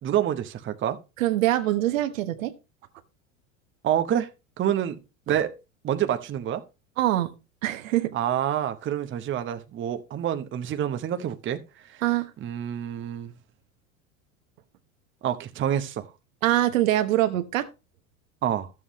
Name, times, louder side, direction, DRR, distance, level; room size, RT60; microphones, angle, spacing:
voice 1, 0.0-1.0 3.8-4.3 4.6-5.0 5.3-5.5 5.8-6.6 8.1-12.0 12.4-13.3 15.2-16.1 18.4-18.7, right 10 dB, 30° right, 0.8 m, -27 dB
voice 2, 1.2-2.5 7.0-7.3 7.6-8.1 12.0-12.3 16.4-17.7, right 14 dB, 75° right, 1.2 m, -23 dB
12.5 x 7.5 x 3.0 m
hypercardioid pair, 90°, 40 cm